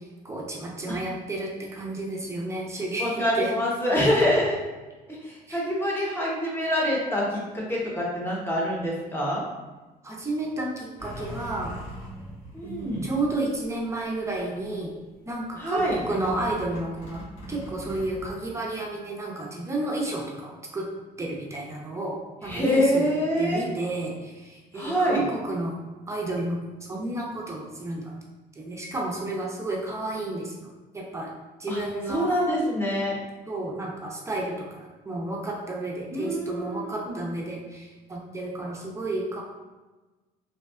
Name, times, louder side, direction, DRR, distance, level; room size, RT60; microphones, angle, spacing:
voice 1, 0.2-3.5 5.5-5.6 10.0-11.7 12.6-14.9 15.3-17.2 17.5-20.9 21.2-23.1 23.4-25.7 26.1-26.6 26.9-28.1 28.6-30.5 30.9-31.3 31.6-32.3 33.5-39.4, right 2 dB, 15° right, -2 dB, 0.4 m, -31 dB
voice 2, 3.0-4.6 5.1-9.4 12.5-13.0 15.6-16.0 22.4-23.7 24.7-25.2 31.7-31.8 32.1-33.1 36.1-37.2, equal, 15° left, -4 dB, 0.8 m, -25 dB
sound 1, 11.0-14.0 14.3-14.9 15.8-18.3, right 1 dB, 80° left, 1.2 m, -40 dB
2.7 x 2.2 x 2.3 m, 1.2 s
cardioid pair, 110°, 17 cm